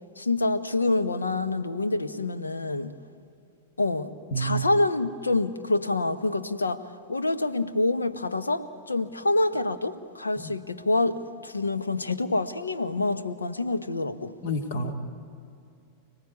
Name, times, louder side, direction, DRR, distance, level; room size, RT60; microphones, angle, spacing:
voice 1, 0.2-2.9 3.8-4.1 4.4-6.8 7.1-14.3, left 2 dB, 80° left, 11 dB, 1.2 m, -26 dB
voice 2, 4.3-4.7 10.4-10.5 14.4-14.9, right 2 dB, 55° left, 6 dB, 2.2 m, -29 dB
29.0 x 18.5 x 9.6 m, 2.6 s
figure-of-eight pair, 90°, 0 cm